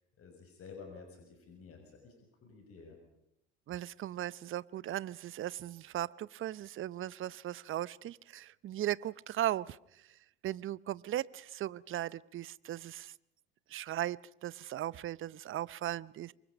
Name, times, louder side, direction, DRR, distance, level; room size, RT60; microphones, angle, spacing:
voice 1, 0.2-2.1 2.4-3.0, left 5 dB, 45° left, 6.5 m, -51 dB
voice 2, 3.7-13.1 13.7-16.3, right 13 dB, 40° right, 0.8 m, -38 dB
27.5 x 24.0 x 5.3 m
hypercardioid pair, 70°, 32 cm